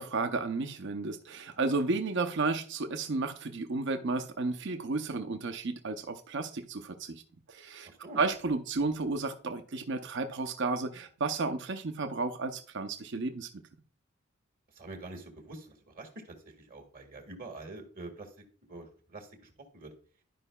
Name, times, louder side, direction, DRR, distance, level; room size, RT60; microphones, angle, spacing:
voice 1, 0.0-7.2 7.5-7.9 8.2-13.5, right 3 dB, 60° right, 0.6 m, -32 dB
voice 2, 7.8-8.2 14.7-18.3 18.7-19.9, right 2 dB, 45° right, 1.6 m, -46 dB
11.5 x 5.4 x 2.3 m
head